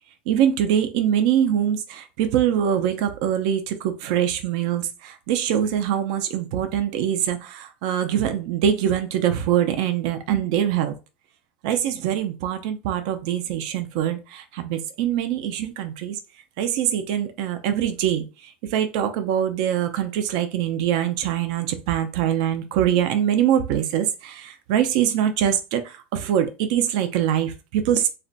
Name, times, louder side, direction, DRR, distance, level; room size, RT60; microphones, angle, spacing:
voice 1, 0.3-10.9 11.6-16.2 16.6-28.1, right 10 dB, 65° right, 7 dB, 0.4 m, -23 dB
2.4 x 2.1 x 3.8 m, 0.31 s
supercardioid pair, 160°, 5 cm